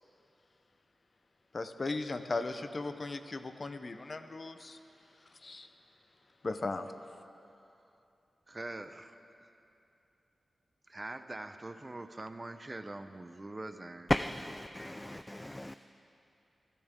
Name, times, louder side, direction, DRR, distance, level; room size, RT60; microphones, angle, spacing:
voice 1, 1.5-4.8 5.4-5.7 6.4-6.9, left 3 dB, 45° left, 9 dB, 0.8 m, -37 dB
voice 2, 8.5-9.2 10.9-14.1, right 2 dB, 30° right, 9 dB, 0.7 m, -43 dB
voice 3, 14.1-15.8, left 1 dB, 15° left, 10 dB, 0.3 m, -34 dB
24.0 x 12.5 x 3.7 m, 2.8 s
cardioid pair, 65°, 0 cm